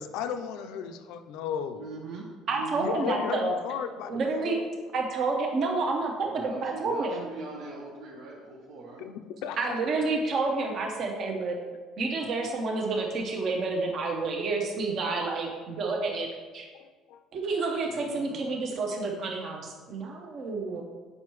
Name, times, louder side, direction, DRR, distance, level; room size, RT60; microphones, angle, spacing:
voice 1, 0.0-1.8 2.8-4.6 9.0-9.6 16.8-17.2, left 7 dB, 75° left, 8 dB, 0.5 m, -35 dB
voice 2, 1.7-2.9 6.2-9.1 17.8-18.4, right 3 dB, 70° right, -3 dB, 0.9 m, -42 dB
voice 3, 2.5-3.5 4.1-4.6 4.9-7.2 9.6-11.6 12.0-16.3 16.5-16.7 17.3-20.8, right 3 dB, 40° right, 1 dB, 0.8 m, -29 dB
7.6 x 5.5 x 3.1 m, 1.4 s
cardioid pair, 170°, 0 cm